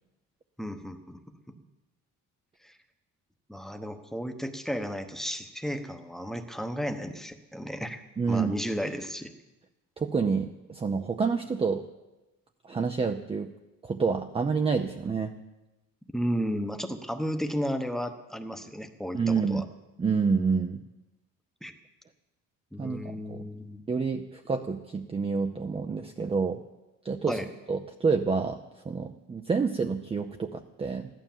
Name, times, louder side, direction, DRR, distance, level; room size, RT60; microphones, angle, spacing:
voice 1, 0.6-1.2 2.6-2.8 3.5-9.3 16.1-19.6 21.6-21.7 22.7-23.8 27.3-27.5, equal, ahead, 6 dB, 1.0 m, -33 dB
voice 2, 8.2-8.5 10.0-11.8 12.6-13.5 13.8-15.3 19.1-19.7 20.0-20.8 22.8-23.5 23.9-26.6 27.0-27.4 27.7-28.6 28.8-31.1, right 5 dB, 15° right, 5 dB, 0.6 m, -28 dB
15.0 x 12.0 x 7.3 m, 1.0 s
cardioid pair, 150°, 34 cm